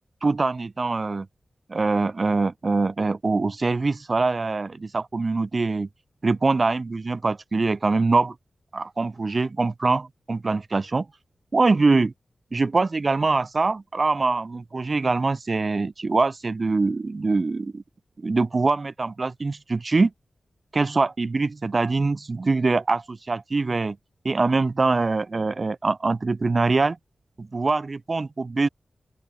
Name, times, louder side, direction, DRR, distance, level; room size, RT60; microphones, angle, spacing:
voice 1, 0.2-1.3 1.7-5.9 6.2-8.3 8.7-11.1 11.5-12.1 12.5-17.8 18.2-20.1 20.7-24.0 24.2-27.0 27.4-28.7, right 3 dB, 40° right, 0.5 m, -23 dB
open air
wide cardioid pair, 130°, 0 cm